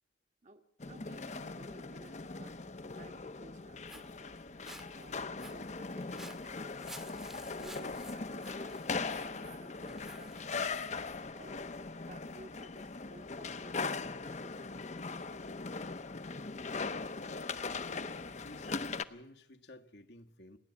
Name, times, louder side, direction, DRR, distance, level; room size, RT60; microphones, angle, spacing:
voice 1, 0.4-2.5 2.8-4.4 4.9-6.8 7.6-8.8 9.0-10.7 11.3-11.6 12.1-15.7, right 2 dB, 40° right, 7 dB, 1.6 m, -56 dB
sound 1, 0.8-19.0, left 4 dB, 40° left, 0.8 m, -40 dB
Walk footsteps, 3.6-11.2, right 1 dB, 5° right, 1.2 m, -54 dB
voice 2, 17.2-18.1 18.4-20.6, left 2 dB, 70° left, 4 dB, 1.6 m, -53 dB
30.0 x 11.0 x 8.3 m, 0.71 s
head